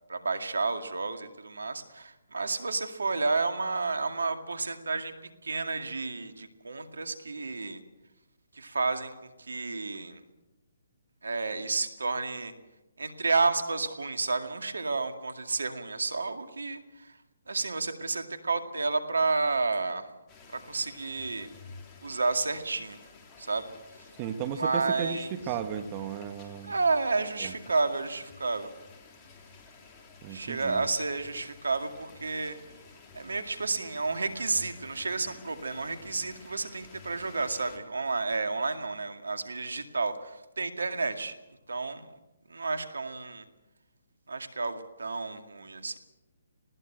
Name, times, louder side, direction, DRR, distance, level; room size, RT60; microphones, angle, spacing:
voice 1, 0.1-5.1 5.4-7.8 8.5-10.2 11.2-12.5 13.0-17.2 17.5-20.1 20.5-21.5 22.0-23.0 23.4-23.7 24.0-24.1 24.5-25.3 26.6-28.7 30.3-32.6 33.1-41.3 41.7-42.1 42.5-43.5 44.3-46.0, right 3 dB, 80° right, 8 dB, 2.1 m, -31 dB
sound 1, 20.3-37.8, left 4 dB, 25° left, 3.2 m, -52 dB
voice 2, 24.2-26.7 27.4-27.5 30.2-30.8, right 8 dB, 30° right, 8 dB, 1.3 m, -35 dB
20.0 x 16.5 x 7.9 m, 1.0 s
figure-of-eight pair, 140°, 0 cm